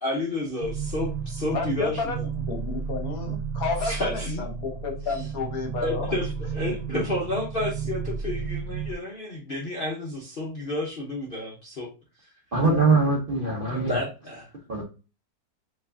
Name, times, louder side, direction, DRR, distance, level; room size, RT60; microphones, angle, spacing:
voice 1, 0.0-2.3 3.8-4.5 5.8-11.9 13.7-14.5, left 2 dB, 45° left, 0.8 m, -31 dB
sound 1, 0.6-8.9, right 6 dB, 85° right, 1.3 m, -32 dB
voice 2, 1.5-2.2 2.5-6.2, left 4 dB, 60° left, 1.3 m, -31 dB
voice 3, 12.5-13.9 14.7-14.8, right 3 dB, 50° right, 0.7 m, -22 dB
4.6 x 3.1 x 2.5 m
omnidirectional pair, 1.9 m